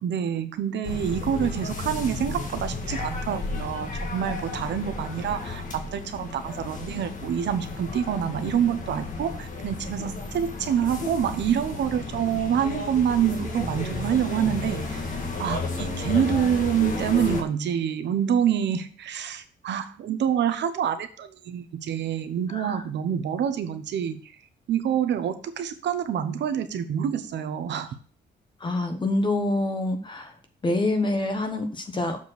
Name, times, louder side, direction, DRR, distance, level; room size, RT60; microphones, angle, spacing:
voice 1, 0.0-5.6 5.9-15.0 15.4-24.2 24.7-27.9, right 9 dB, 70° right, 9 dB, 0.9 m, -26 dB
sound 1, 0.8-17.4, left 3 dB, 45° left, 1.7 m, -33 dB
voice 2, 28.6-30.3 30.6-32.2, left 2 dB, 25° left, 5 dB, 1.2 m, -26 dB
7.3 x 4.5 x 6.2 m, 0.43 s
wide cardioid pair, 160°, 19 cm